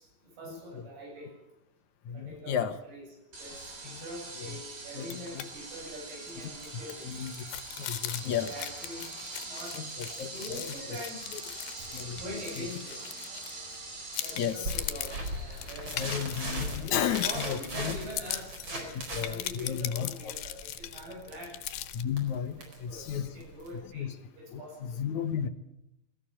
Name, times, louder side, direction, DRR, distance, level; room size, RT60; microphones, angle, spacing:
voice 1, 0.0-1.4 2.1-3.1 3.4-7.1 8.3-9.1 9.4-11.3 11.8-13.0 14.2-16.1 16.8-16.9 17.2-21.6 22.6-24.9, equal, 85° right, 0 dB, 10.0 m, -44 dB
voice 2, 2.1-2.8 4.4-4.5 5.0-5.1 5.3-5.4 7.1-7.3 7.8-8.5 9.7-10.3 11.9-12.2 12.6-12.7 14.4-14.7 15.9-18.0 19.1-20.1 21.9-23.3 23.9-24.1 24.5-25.5, left 8 dB, 65° left, 8 dB, 2.1 m, -33 dB
sound 1, 3.3-17.2, right 3 dB, 55° right, 5.2 m, -44 dB
sound 2, 5.0-5.5 5.8-5.9 6.3-13.8 14.1-22.0, left 13 dB, 90° left, 3.1 m, -40 dB
sound 3, 14.6-23.8, right 1 dB, 30° right, 5.0 m, -39 dB
21.5 x 14.5 x 8.9 m, 0.85 s
omnidirectional pair, 4.4 m